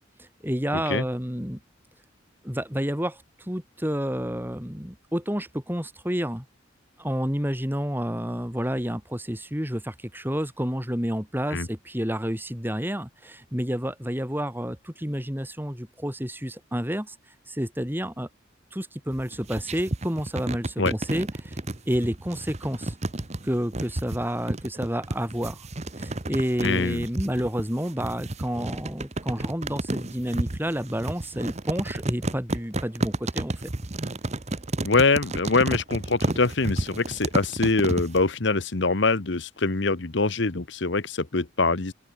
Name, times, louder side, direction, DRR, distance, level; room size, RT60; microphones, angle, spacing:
voice 1, 0.2-1.6 2.4-6.4 7.0-17.1 17.5-18.3 18.7-21.6 21.9-22.9 23.4-25.6 26.0-33.7, equal, 10° right, 4.8 m, -30 dB
sound 1, 19.1-38.2, right 2 dB, 35° right, 1.2 m, -31 dB
voice 2, 26.6-27.0 34.8-41.9, left 3 dB, 60° left, 1.1 m, -24 dB
open air
head